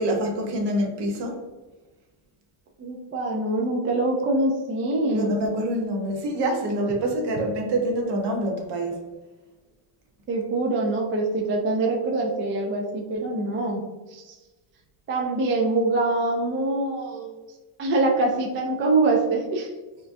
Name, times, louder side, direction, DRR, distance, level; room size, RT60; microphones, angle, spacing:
voice 1, 0.0-1.4 5.1-9.0, right 1 dB, 55° right, 1 dB, 1.0 m, -26 dB
voice 2, 2.8-5.4 10.3-13.8 14.1-14.3 15.1-17.3 17.8-19.7, right 2 dB, 30° right, -1 dB, 0.4 m, -24 dB
4.3 x 2.4 x 2.5 m, 1.2 s
cardioid pair, 130°, 48 cm